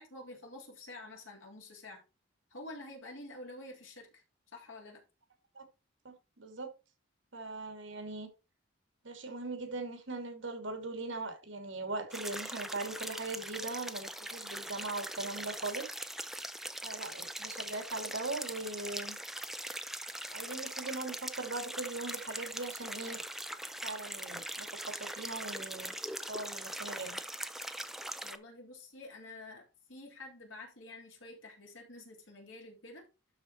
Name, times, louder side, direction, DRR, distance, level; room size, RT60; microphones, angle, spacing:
voice 1, 0.0-2.0 2.5-4.2 4.5-5.0 28.2-33.1, left 2 dB, 85° left, 3.5 m, -49 dB
voice 2, 6.0-6.7 7.3-8.3 9.0-15.9 16.8-19.2 20.3-23.2 23.8-26.0 26.3-27.2, right 3 dB, 70° right, 2.7 m, -40 dB
sound 1, 12.1-28.4, right 1 dB, ahead, 0.6 m, -41 dB
12.0 x 4.3 x 4.5 m
head